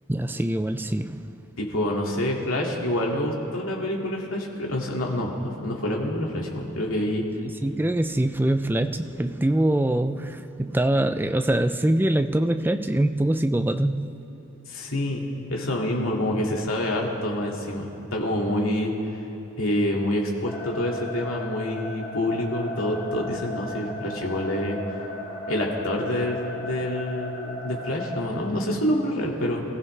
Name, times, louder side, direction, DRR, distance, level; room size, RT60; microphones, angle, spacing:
voice 1, 0.1-1.3 7.6-14.1, right 1 dB, 10° right, 9 dB, 0.4 m, -24 dB
voice 2, 1.6-5.3 5.6-7.2 14.7-15.2 15.5-18.9 19.6-24.8 25.5-29.6, left 1 dB, 75° left, -1 dB, 2.3 m, -27 dB
sound 1, 20.4-28.3, left 1 dB, 45° left, 4.8 m, -36 dB
26.0 x 15.5 x 3.3 m, 2.8 s
head